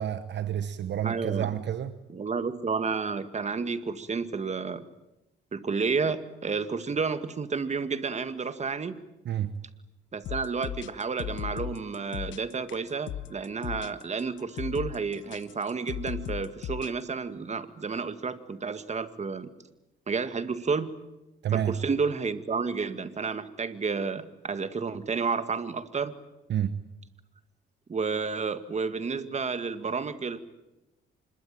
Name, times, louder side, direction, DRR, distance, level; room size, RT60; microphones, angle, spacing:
voice 1, 0.0-1.9 9.2-9.6 21.4-21.8 26.5-26.8, right 10 dB, 60° right, 1.1 m, -29 dB
voice 2, 1.0-1.5 2.1-4.9 5.5-9.0 10.1-19.5 20.1-20.9 21.5-26.2 27.9-30.4, right 5 dB, 35° right, 1.9 m, -31 dB
sound 1, 10.2-16.9, left 12 dB, 75° left, 1.1 m, -37 dB
26.0 x 21.5 x 9.2 m
cardioid pair, 90°, 20 cm